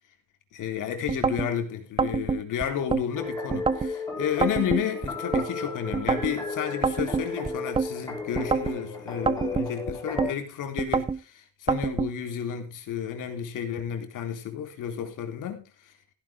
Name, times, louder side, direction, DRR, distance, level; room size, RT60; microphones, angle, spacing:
voice 1, 0.5-15.9, left 9 dB, 70° left, 3.6 m, -32 dB
sound 1, 1.1-1.5 2.0-3.0 3.5-3.9 4.4-5.5 5.9-6.3 6.8-7.9 8.4-8.8 9.3-10.3 10.8-11.2 11.7-12.1, right 5 dB, 15° right, 0.6 m, -26 dB
sound 2, 3.1-10.3, left 3 dB, 10° left, 4.3 m, -35 dB
16.0 x 10.5 x 3.5 m
cardioid pair, 160°, 32 cm